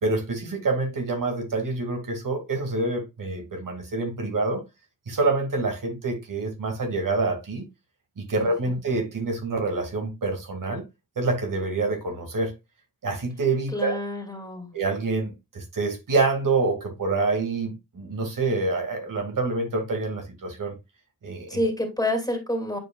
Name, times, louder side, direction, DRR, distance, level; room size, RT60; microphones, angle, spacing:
voice 1, 0.0-4.6 5.1-7.6 8.2-10.8 11.2-12.5 13.0-14.0 14.7-20.7 21.2-21.5, right 3 dB, 65° right, 2.4 m, -26 dB
voice 2, 8.4-8.8 13.7-14.8 21.5-22.8, left 1 dB, 10° left, 2.6 m, -29 dB
9.0 x 4.8 x 2.4 m
cardioid pair, 45°, 35 cm